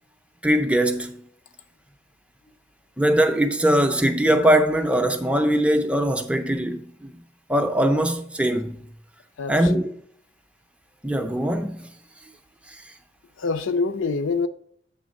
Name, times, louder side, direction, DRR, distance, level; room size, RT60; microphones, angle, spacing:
voice 1, 0.4-1.2 3.0-7.2 7.5-8.9 9.5-10.0 11.0-11.9 12.7-12.8, right 1 dB, 5° right, 0.4 m, -21 dB
voice 2, 9.4-9.8 13.4-14.5, left 4 dB, 90° left, 0.6 m, -25 dB
7.9 x 3.5 x 6.3 m
head